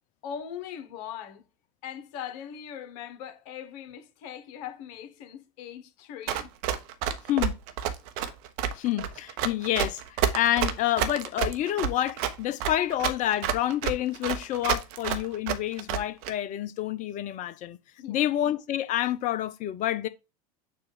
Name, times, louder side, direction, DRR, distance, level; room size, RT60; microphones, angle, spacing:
voice 1, 0.2-1.5 1.8-6.5 18.0-18.2, left 9 dB, 55° left, 1.2 m, -40 dB
Run, 6.3-16.3, right 9 dB, 55° right, 0.8 m, -29 dB
voice 2, 8.8-10.0 10.3-17.8 18.1-20.1, left 13 dB, 40° left, 0.6 m, -28 dB
6.9 x 2.5 x 5.5 m
hypercardioid pair, 85°, 21 cm